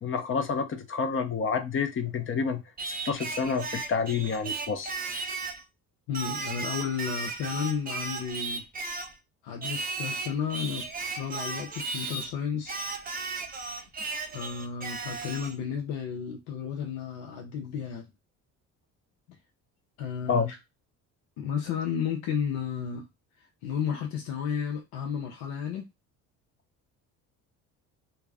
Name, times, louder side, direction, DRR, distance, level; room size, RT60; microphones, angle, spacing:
voice 1, 0.0-4.9 20.3-20.5, left 5 dB, 35° left, 0.6 m, -29 dB
Singing, 2.8-5.6 6.1-9.2 9.6-12.3 12.7-15.6, right 4 dB, 25° right, 0.5 m, -35 dB
voice 2, 6.1-8.6 9.4-10.9 11.2-12.9 14.3-18.1 20.0-20.6 21.4-23.1 23.6-25.9, left 7 dB, 75° left, 0.7 m, -32 dB
2.3 x 2.0 x 3.4 m
supercardioid pair, 70°, 38 cm